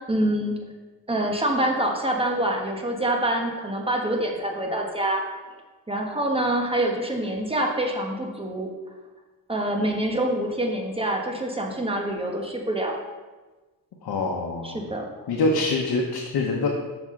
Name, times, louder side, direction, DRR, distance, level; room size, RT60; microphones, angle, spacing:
voice 1, 0.1-0.6 1.1-5.2 5.9-8.7 9.5-13.0 14.6-15.3, right 1 dB, 15° right, 1 dB, 1.1 m, -26 dB
voice 2, 14.0-14.8 15.3-16.8, left 3 dB, 80° left, -1 dB, 0.9 m, -25 dB
6.1 x 5.9 x 3.7 m, 1.2 s
cardioid pair, 85°, 37 cm